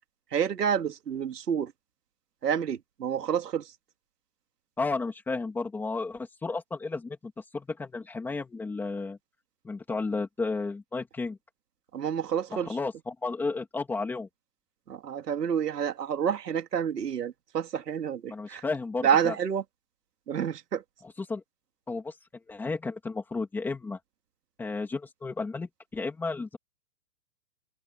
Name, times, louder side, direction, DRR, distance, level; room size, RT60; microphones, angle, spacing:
voice 1, 0.3-1.7 2.4-3.7 11.9-12.8 14.9-18.6 19.0-19.6 20.3-20.8, right 8 dB, 70° right, 3.7 m, -29 dB
voice 2, 4.8-9.2 9.6-11.4 12.5-14.3 18.3-19.3 21.2-21.4 21.9-22.1 22.5-24.0 24.6-26.6, left 3 dB, 5° left, 2.8 m, -33 dB
open air
hypercardioid pair, 180°, 50 cm